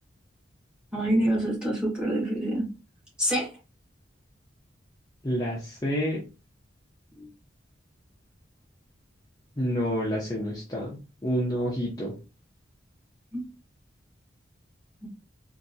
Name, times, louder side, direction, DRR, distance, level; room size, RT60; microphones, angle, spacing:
voice 1, 0.9-2.7 3.2-3.6 7.2-7.3 13.3-13.4 15.0-15.1, right 1 dB, 5° right, -3 dB, 1.7 m, -26 dB
voice 2, 5.2-6.2 9.6-12.1, equal, 20° left, -4 dB, 0.7 m, -28 dB
3.4 x 2.6 x 2.7 m, 0.31 s
head